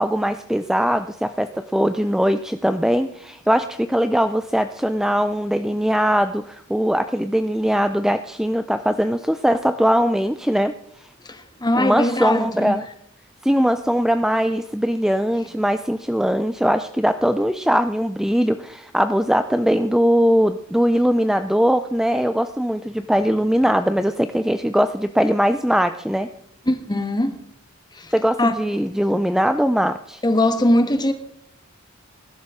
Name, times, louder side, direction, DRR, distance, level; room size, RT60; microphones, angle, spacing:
voice 1, 0.0-10.7 11.8-12.8 13.4-26.3 28.1-30.2, equal, ahead, 0.4 m, -20 dB
voice 2, 11.2-12.8 26.7-27.4 27.9-28.1 28.4-28.7 30.2-31.1, left 1 dB, 20° left, 1.3 m, -21 dB
20.0 x 11.5 x 3.7 m
head